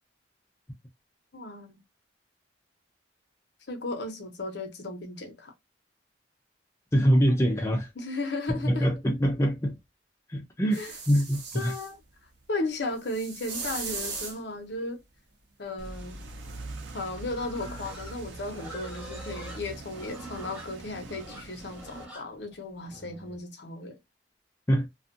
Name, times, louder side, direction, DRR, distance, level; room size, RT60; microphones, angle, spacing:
voice 1, 1.3-1.8 3.7-5.5 8.0-8.9 10.7-10.9 11.5-12.0 12.5-15.0 15.6-16.2 16.9-24.0, left 2 dB, 65° left, 0.8 m, -35 dB
voice 2, 6.9-7.9 8.5-9.8 10.3-10.8 11.1-11.7 24.7-24.9, equal, 15° left, 0.4 m, -24 dB
sound 1, 10.7-11.9 13.0-14.4 16.5-16.6, right 4 dB, 60° right, 0.9 m, -37 dB
sound 2, 15.8-22.1, right 2 dB, 85° right, 0.6 m, -43 dB
Livestock farm animals working animals, 17.4-23.4, right 1 dB, 5° right, 0.9 m, -45 dB
2.5 x 2.4 x 2.5 m
head